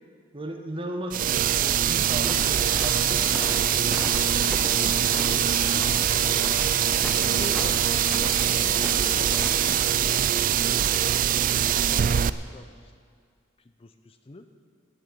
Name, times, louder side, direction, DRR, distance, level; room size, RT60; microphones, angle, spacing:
voice 1, 0.3-3.3 5.6-5.9, right 1 dB, 30° right, 4 dB, 1.3 m, -36 dB
sound 1, 1.1-12.3, right 10 dB, 45° right, 0.3 m, -23 dB
sound 2, 2.2-10.0, equal, ahead, 1.2 m, -38 dB
sound 3, 2.3-9.8, left 9 dB, 55° left, 1.0 m, -38 dB
voice 2, 3.6-4.5 5.1-6.4 7.1-7.7 8.6-12.9 13.6-14.5, left 2 dB, 30° left, 8 dB, 0.6 m, -44 dB
17.0 x 6.7 x 8.5 m, 2.1 s
head